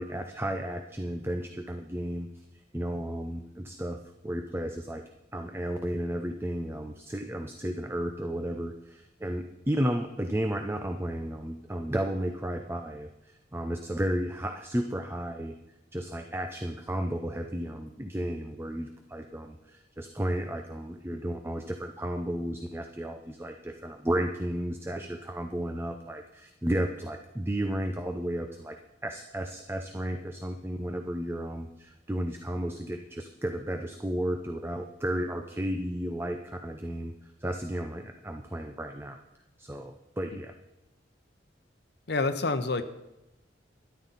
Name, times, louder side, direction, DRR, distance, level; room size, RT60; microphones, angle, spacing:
voice 1, 0.0-2.3 2.7-5.0 5.3-15.6 15.9-28.8 29.0-39.2 39.6-40.5, right 1 dB, 15° right, 5 dB, 0.6 m, -33 dB
voice 2, 42.1-42.8, left 3 dB, 60° left, 9 dB, 0.9 m, -28 dB
13.0 x 11.5 x 4.1 m, 0.96 s
head